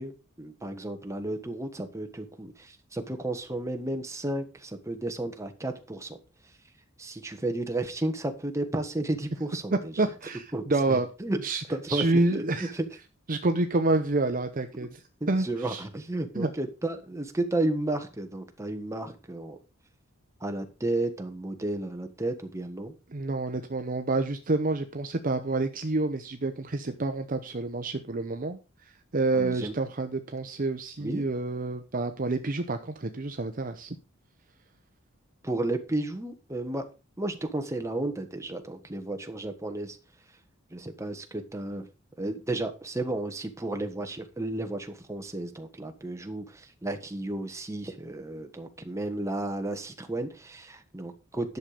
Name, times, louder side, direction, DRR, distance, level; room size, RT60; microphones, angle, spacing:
voice 1, 0.0-6.2 7.0-9.9 10.5-11.4 11.7-12.9 15.2-19.6 20.4-22.9 29.3-29.7 31.0-31.2 35.4-36.8 37.2-40.0 40.7-41.9 42.2-51.6, right 2 dB, 15° right, 5 dB, 1.4 m, -33 dB
voice 2, 10.0-11.1 11.4-11.6 11.9-12.7 13.3-15.0 15.3-15.8 16.3-16.5 23.1-28.6 29.1-34.0, right 2 dB, 45° right, 8 dB, 0.8 m, -28 dB
10.5 x 6.8 x 5.1 m, 0.32 s
head